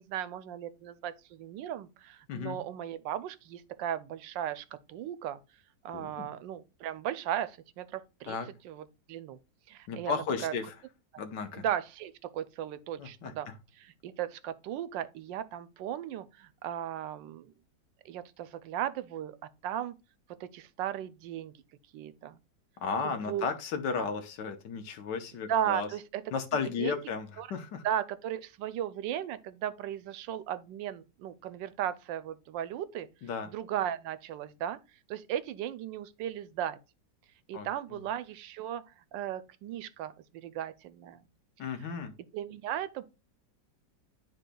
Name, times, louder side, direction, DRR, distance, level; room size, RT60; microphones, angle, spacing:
voice 1, 0.0-5.4 5.8-8.4 8.6-9.4 9.7-10.5 11.1-11.2 11.6-13.5 13.8-17.5 18.0-19.4 19.6-20.0 20.4-21.5 21.9-22.4 23.0-23.5 23.9-24.1 25.5-26.2 26.8-27.0 27.4-27.5 27.8-33.1 33.5-34.8 35.1-36.8 37.5-38.8 39.1-41.3 41.8-41.9 42.3-43.0, right 10 dB, 85° right, 1.3 m, -36 dB
voice 2, 2.3-2.6 5.9-6.3 8.3-8.5 9.9-10.7 11.2-11.6 13.0-13.3 22.8-25.9 26.3-27.8 33.2-33.5 37.5-37.7 41.6-42.1, left 5 dB, 70° left, 1.5 m, -34 dB
11.5 x 3.9 x 2.3 m
omnidirectional pair, 2.0 m